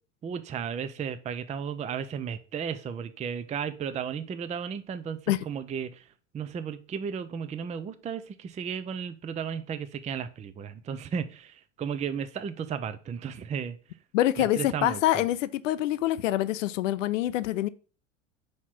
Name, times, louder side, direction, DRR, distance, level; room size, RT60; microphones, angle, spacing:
voice 1, 0.2-6.1 6.3-13.8 14.4-15.2, right 7 dB, 20° right, 0.5 m, -34 dB
voice 2, 14.1-17.7, left 14 dB, 75° left, 0.5 m, -25 dB
4.8 x 4.2 x 5.9 m
hypercardioid pair, 80°, 38 cm